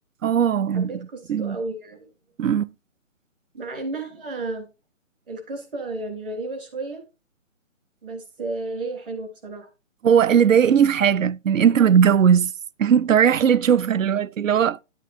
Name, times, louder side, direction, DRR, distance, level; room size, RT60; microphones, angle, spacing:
voice 1, 0.2-0.9 1.3-1.6 2.4-2.7 10.0-12.5 12.8-14.8, right 8 dB, 75° right, 0.5 m, -18 dB
voice 2, 0.7-2.1 3.5-4.7 5.3-7.0 8.0-9.7 11.6-11.8, right 2 dB, 40° right, 3.5 m, -32 dB
11.0 x 8.3 x 2.6 m
hypercardioid pair, 170°, 40 cm